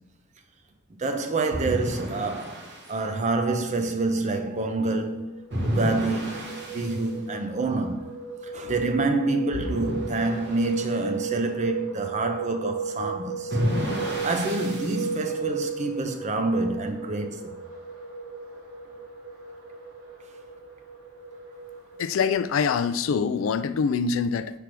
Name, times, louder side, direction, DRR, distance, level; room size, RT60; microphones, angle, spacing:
voice 1, 0.9-8.1 8.4-13.6 13.9-17.6, right 3 dB, 35° right, 0.6 m, -27 dB
sound 1, 1.5-2.9 5.5-7.0 9.5-10.9 13.5-15.1, equal, 55° right, 1.2 m, -31 dB
sound 2, 4.6-22.3, right 4 dB, 85° right, 1.5 m, -36 dB
voice 2, 22.0-24.6, left 6 dB, 70° left, 0.3 m, -24 dB
6.2 x 3.4 x 6.0 m
head